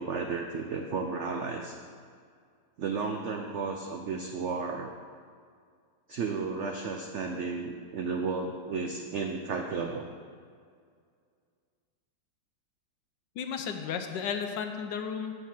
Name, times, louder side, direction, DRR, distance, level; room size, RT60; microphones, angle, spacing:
voice 1, 0.0-1.8 2.8-4.9 6.1-10.0, right 4 dB, 90° right, 3 dB, 0.6 m, -33 dB
voice 2, 13.4-15.3, left 7 dB, 80° left, 6 dB, 1.2 m, -33 dB
6.6 x 6.4 x 7.4 m, 2.1 s
omnidirectional pair, 1.9 m